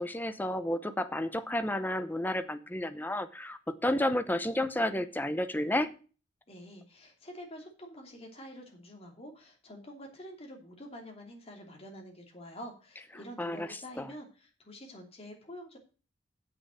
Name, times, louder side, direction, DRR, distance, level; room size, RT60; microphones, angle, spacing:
voice 1, 0.0-5.9 13.4-13.7 14.0-14.1, left 1 dB, 10° left, 11 dB, 0.7 m, -31 dB
voice 2, 6.5-15.8, equal, 35° left, 1 dB, 2.8 m, -47 dB
8.0 x 6.5 x 7.6 m, 0.36 s
head